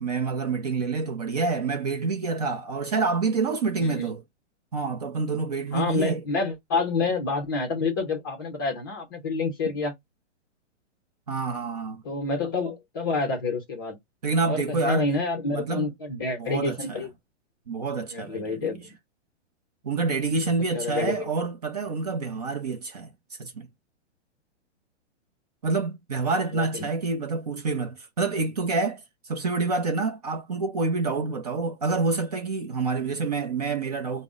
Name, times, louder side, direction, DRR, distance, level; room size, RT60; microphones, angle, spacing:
voice 1, 0.0-4.2 4.7-6.2 11.3-12.0 14.2-15.1 15.5-15.9 16.4-17.0 17.7-18.7 19.8-23.1 23.4-23.7 25.6-34.2, right 4 dB, 35° right, 0.5 m, -27 dB
voice 2, 3.8-4.1 5.7-9.9 12.0-14.0 14.5-17.1 17.9-18.9 20.3-21.3 26.5-26.9 33.0-33.1, left 3 dB, 20° left, 0.6 m, -28 dB
5.0 x 2.1 x 3.5 m
hypercardioid pair, 175°, 36 cm